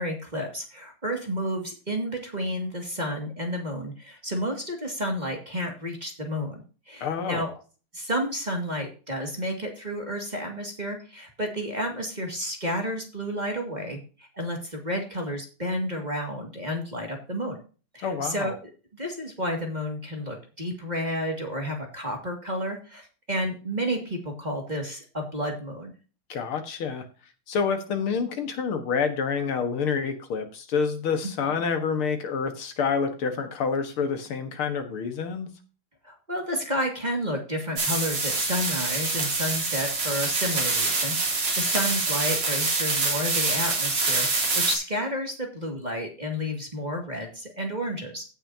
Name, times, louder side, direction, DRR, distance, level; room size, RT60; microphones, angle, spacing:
voice 1, 0.0-7.5 7.9-17.6 17.9-18.5 18.9-25.9 31.2-31.6 36.0-48.2, equal, 20° right, 2 dB, 2.2 m, -31 dB
voice 2, 7.0-7.5 18.0-18.6 26.3-27.1 27.5-35.5, left 6 dB, 75° left, 7 dB, 2.3 m, -28 dB
sound 1, 37.8-44.7, right 3 dB, 70° right, 4.3 m, -26 dB
16.5 x 6.8 x 2.8 m, 0.35 s
omnidirectional pair, 2.4 m